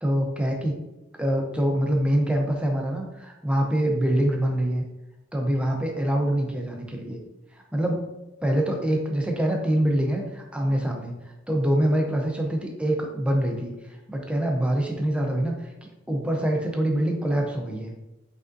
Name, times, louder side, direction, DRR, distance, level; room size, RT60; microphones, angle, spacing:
voice 1, 0.0-0.8 1.2-4.8 5.3-7.2 7.7-8.2 8.4-11.1 11.5-13.7 14.1-15.7 16.1-17.9, right 1 dB, 5° right, 1 dB, 0.6 m, -25 dB
5.0 x 3.5 x 2.6 m, 0.98 s
head